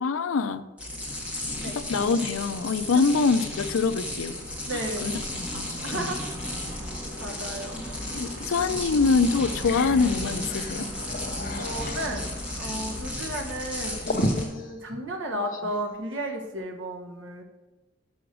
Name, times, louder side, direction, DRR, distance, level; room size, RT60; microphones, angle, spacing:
voice 1, 0.0-0.7 1.7-4.4 4.7-5.2 5.5-6.1 8.1-10.9, left 4 dB, 85° left, 12 dB, 0.5 m, -25 dB
sound 1, 0.8-14.5, left 1 dB, 5° right, 1.6 m, -34 dB
voice 2, 4.6-5.2 5.8-6.5 7.2-7.8 11.6-17.4, right 1 dB, 70° right, 1 dB, 1.4 m, -34 dB
sound 2, 8.4-8.5 9.0-9.1 9.4-15.8, left 1 dB, 40° left, 0.7 m, -35 dB
6.3 x 6.0 x 6.2 m, 1.1 s
head